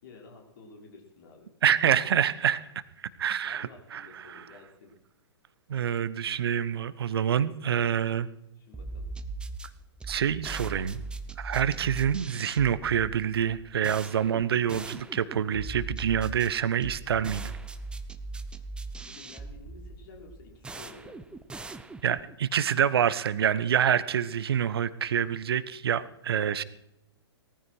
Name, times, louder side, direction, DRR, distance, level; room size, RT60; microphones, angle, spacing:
voice 1, 0.0-1.5 3.4-4.9 8.5-9.1 19.0-21.4, left 4 dB, 50° left, 1 dB, 5.5 m, -51 dB
voice 2, 1.6-2.6 3.2-4.4 5.7-8.3 10.1-11.0 11.4-17.5 22.0-26.6, right 9 dB, 60° right, 16 dB, 1.1 m, -27 dB
sound 1, 8.7-22.3, right 3 dB, 5° right, 0.9 m, -40 dB
19.0 x 14.0 x 4.8 m, 0.82 s
figure-of-eight pair, 115°, 14 cm